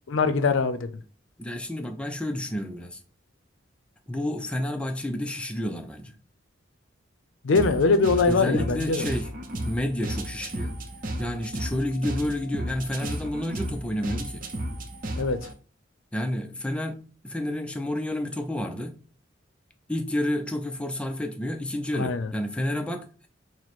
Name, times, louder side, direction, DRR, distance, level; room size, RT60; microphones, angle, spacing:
voice 1, 0.1-0.9 7.4-9.0 15.2-15.5 21.9-22.3, left 4 dB, 80° left, 0.5 m, -22 dB
voice 2, 1.4-3.0 4.1-6.2 8.3-9.3 9.6-10.8 11.2-14.5 16.1-19.0 19.9-23.3, left 1 dB, 5° left, 0.4 m, -30 dB
sound 1, 7.5-15.5, right 1 dB, 45° right, 0.6 m, -34 dB
4.6 x 2.1 x 4.0 m
head